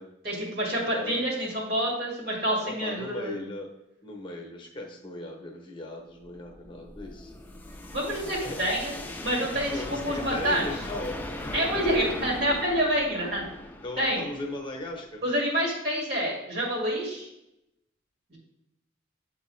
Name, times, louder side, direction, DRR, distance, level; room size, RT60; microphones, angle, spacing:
voice 1, 0.2-3.3 7.9-8.9 9.2-10.6 11.5-13.5 14.0-14.2 15.2-17.3 18.3-18.4, equal, 55° right, -3 dB, 2.0 m, -27 dB
voice 2, 0.9-1.3 2.7-3.7 4.0-7.3 8.4-8.6 9.6-11.7 12.2-12.3 13.8-15.2, left 2 dB, 25° left, 2 dB, 0.8 m, -38 dB
sound 1, 6.2-15.1, left 1 dB, 10° left, 0.4 m, -39 dB
8.2 x 3.8 x 3.1 m, 0.86 s
head